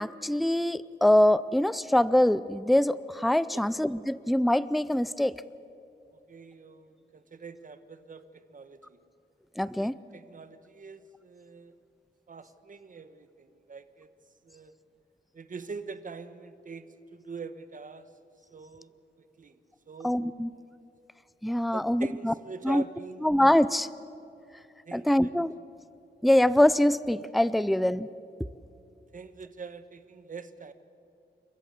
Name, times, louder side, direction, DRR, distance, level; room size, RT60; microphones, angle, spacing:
voice 1, 0.0-5.4 9.6-10.0 20.0-20.5 21.4-22.3 22.6-22.8 23.2-23.9 24.9-25.5 26.2-28.1, left 1 dB, ahead, 17 dB, 0.5 m, -24 dB
voice 2, 6.1-9.0 9.8-11.7 12.3-14.1 14.4-14.7 15.3-18.1 18.5-19.6 19.9-20.2 21.7-23.3 24.8-25.3 29.1-30.7, right 4 dB, 45° right, 11 dB, 1.3 m, -44 dB
30.0 x 14.0 x 8.0 m, 2.7 s
wide cardioid pair, 105°, 19 cm